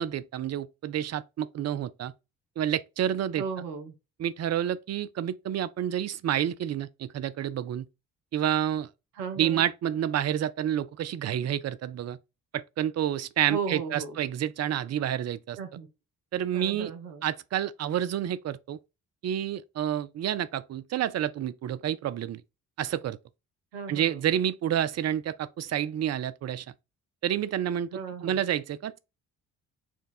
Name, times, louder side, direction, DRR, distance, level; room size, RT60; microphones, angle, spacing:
voice 1, 0.0-2.1 2.6-3.4 4.2-7.9 8.3-8.9 9.4-12.2 12.5-15.6 16.3-16.9 17.2-18.8 19.2-22.4 22.8-23.2 23.9-26.7 27.2-27.9 28.2-29.0, right 10 dB, 35° right, 0.5 m, -29 dB
voice 2, 3.4-3.9 9.1-9.7 13.5-14.2 15.6-15.9 16.5-17.3 23.7-24.2 27.9-28.4, right 5 dB, 90° right, 0.7 m, -35 dB
4.4 x 2.3 x 4.0 m
hypercardioid pair, 45°, 45 cm